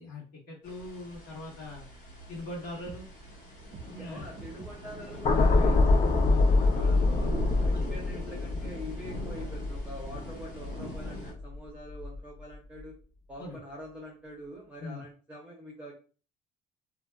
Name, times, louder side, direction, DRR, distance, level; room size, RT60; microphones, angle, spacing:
voice 1, 0.0-1.8 2.3-3.1 3.9-4.3 7.7-7.9 13.4-13.6 14.8-15.0, left 1 dB, 65° left, -6 dB, 1.3 m, -41 dB
sound 1, 0.6-11.3, left 1 dB, 85° left, 1.1 m, -42 dB
sound 2, 2.9-3.0 3.7-3.9 4.2-4.7 5.5-5.6 6.3-6.4 7.2-7.3 7.6-7.7, right 3 dB, 50° right, 0.6 m, -44 dB
voice 2, 3.8-7.3 7.6-12.9 13.3-15.9, equal, 5° right, -4 dB, 0.8 m, -45 dB
sound 3, 5.2-11.5 11.9-12.2, left 3 dB, 40° left, 0.4 m, -25 dB
2.7 x 2.1 x 2.2 m, 0.38 s
cardioid pair, 110°, 17 cm